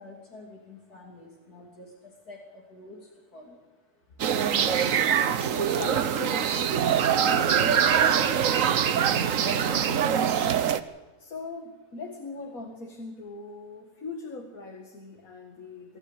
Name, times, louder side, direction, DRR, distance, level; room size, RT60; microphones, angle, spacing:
voice 1, 0.0-1.9 2.3-3.0 3.3-3.6, left 2 dB, 80° left, -2 dB, 3.7 m, -47 dB
sound 1, 4.2-10.8, right 8 dB, 60° right, 1.2 m, -23 dB
voice 2, 4.4-5.2 5.5-8.7 9.4-10.2 11.2-16.0, left 3 dB, 65° left, 3 dB, 2.4 m, -41 dB
24.5 x 14.0 x 8.5 m, 1.3 s
omnidirectional pair, 1.6 m